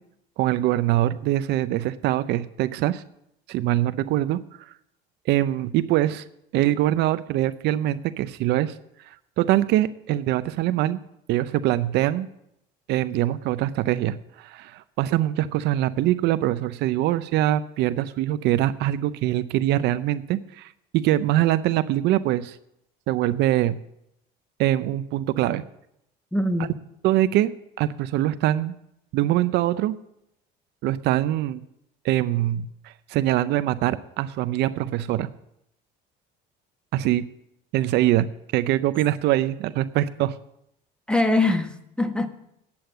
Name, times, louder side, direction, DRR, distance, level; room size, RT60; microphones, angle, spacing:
voice 1, 0.4-3.0 3.5-4.4 5.3-6.2 6.5-8.7 9.4-11.0 11.3-12.3 12.9-22.6 23.1-23.8 24.6-25.6 27.0-27.5 27.8-28.7 29.1-30.0 30.8-31.6 32.0-32.7 33.1-35.3 36.9-37.3 37.7-40.4, right 14 dB, 70° right, 0.6 m, -23 dB
voice 2, 26.3-26.8 41.1-42.3, left 2 dB, 5° left, 1.1 m, -23 dB
9.6 x 8.6 x 7.8 m
cardioid pair, 120°, 18 cm